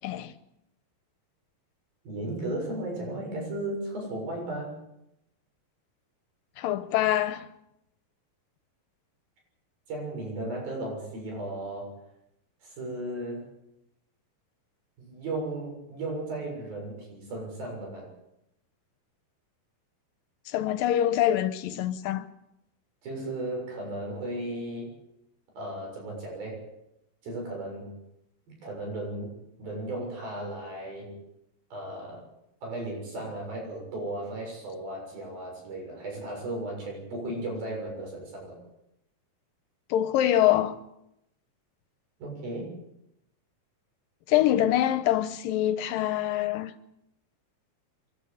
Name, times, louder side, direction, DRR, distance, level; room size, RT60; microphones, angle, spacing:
voice 1, 0.0-0.3 6.6-7.5 20.5-22.3 39.9-40.8 44.3-46.7, left 12 dB, 80° left, 2.6 m, -25 dB
voice 2, 2.1-4.8 9.9-11.9 12.6-13.5 15.0-18.1 23.0-24.9 25.6-26.6 27.2-27.9 28.6-31.1 31.7-32.2 32.6-38.6 42.2-42.7, right 1 dB, 80° right, 8.8 m, -35 dB
28.0 x 12.0 x 8.2 m
omnidirectional pair, 4.1 m